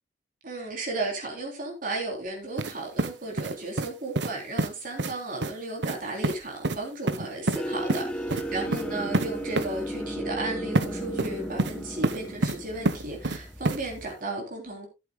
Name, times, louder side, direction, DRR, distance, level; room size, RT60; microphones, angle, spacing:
voice 1, 0.4-14.9, right 2 dB, 50° right, 3.4 m, -34 dB
sound 1, 2.6-2.7 3.0-3.9 4.2-4.3 4.6-4.7 5.0-5.1 5.4-5.5 5.8-6.0 6.2-6.4 6.6-6.8 7.1-7.6 7.9-8.0 8.3-8.4 8.7-8.8 9.1-9.3 9.6-9.7 10.8-10.9 11.2-11.7 12.0-12.6 12.9-13.4 13.7-13.8, right 2 dB, 75° right, 1.0 m, -26 dB
sound 2, 7.6-14.1, right 1 dB, 5° left, 1.0 m, -35 dB
16.5 x 8.6 x 2.2 m
head